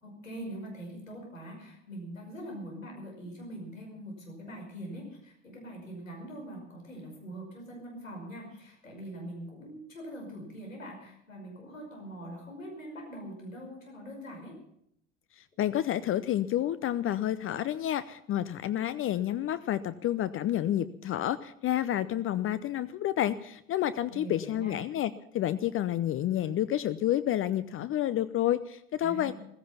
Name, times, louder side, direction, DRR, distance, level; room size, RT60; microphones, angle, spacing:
voice 1, 0.0-14.6 24.1-24.8 29.0-29.3, right 1 dB, 85° left, 0 dB, 5.5 m, -43 dB
voice 2, 15.4-29.3, left 12 dB, 35° left, 14 dB, 0.7 m, -29 dB
15.5 x 15.5 x 5.7 m, 0.72 s
figure-of-eight pair, 70°, 39 cm